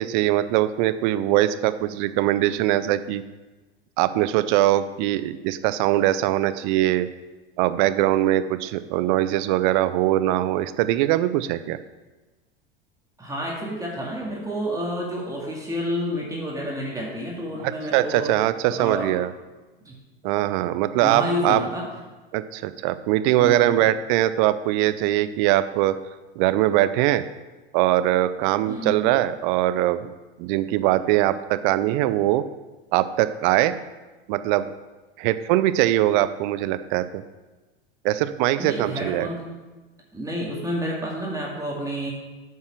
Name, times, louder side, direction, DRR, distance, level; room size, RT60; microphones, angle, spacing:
voice 1, 0.0-3.2 4.0-7.1 7.6-11.8 17.6-19.3 20.2-21.6 22.3-26.0 26.4-27.2 27.7-30.1 30.4-32.4 32.9-33.8 34.3-34.7 35.2-37.2 38.0-39.3, right 14 dB, 55° right, 13 dB, 0.6 m, -22 dB
voice 2, 13.2-18.3 18.7-19.1 19.9-20.0 21.0-21.9 23.4-23.8 28.7-29.1 38.6-39.5 40.1-42.1, equal, 10° right, -3 dB, 2.1 m, -29 dB
9.3 x 5.6 x 5.8 m, 1.2 s
hypercardioid pair, 85°, 30 cm